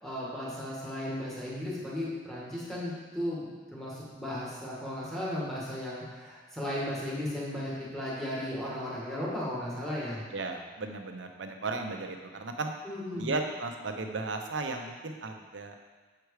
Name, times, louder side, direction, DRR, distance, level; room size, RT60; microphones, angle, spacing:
voice 1, 0.0-10.2 12.8-13.3, left 1 dB, ahead, -8 dB, 1.8 m, -35 dB
voice 2, 10.3-12.7 13.1-15.8, right 3 dB, 80° right, 4 dB, 0.8 m, -35 dB
7.7 x 4.8 x 4.8 m, 1.4 s
head